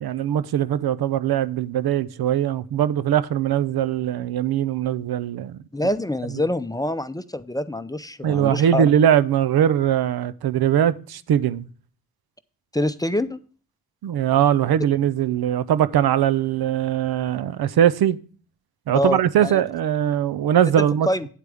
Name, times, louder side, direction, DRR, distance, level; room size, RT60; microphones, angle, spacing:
voice 1, 0.0-5.6 8.2-11.7 14.0-18.2 18.9-21.1, right 10 dB, 85° right, 0.6 m, -21 dB
voice 2, 5.7-8.9 12.7-13.4 18.9-19.5 20.8-21.3, left 1 dB, 10° left, 0.6 m, -25 dB
9.2 x 8.1 x 3.5 m
cardioid pair, 65°, 36 cm